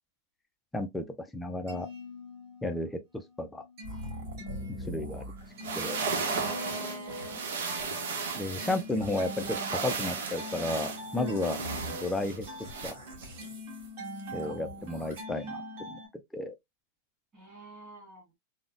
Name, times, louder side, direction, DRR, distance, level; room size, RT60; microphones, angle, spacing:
voice 1, 0.7-1.0 1.3-1.9 2.6-3.0 3.4-3.7 4.9-5.2 5.8-6.0 8.4-12.5 12.8-13.0 14.3-15.6 15.9-16.0 16.3-16.5, left 2 dB, 5° left, 0.3 m, -33 dB
sound 1, 1.5-2.9 3.2-16.1, left 1 dB, 40° right, 1.5 m, -43 dB
sound 2, 3.8-5.5 6.0-6.4 6.6-7.5 7.8-9.6 9.9-15.2, right 1 dB, 65° right, 1.7 m, -45 dB
sound 3, 5.4-12.9, right 4 dB, 80° right, 0.9 m, -35 dB
voice 2, 6.3-7.5 11.2-11.5 14.6-14.7 17.3-18.2, right 3 dB, 15° right, 1.8 m, -43 dB
3.8 x 2.1 x 2.3 m
supercardioid pair, 175°, 0 cm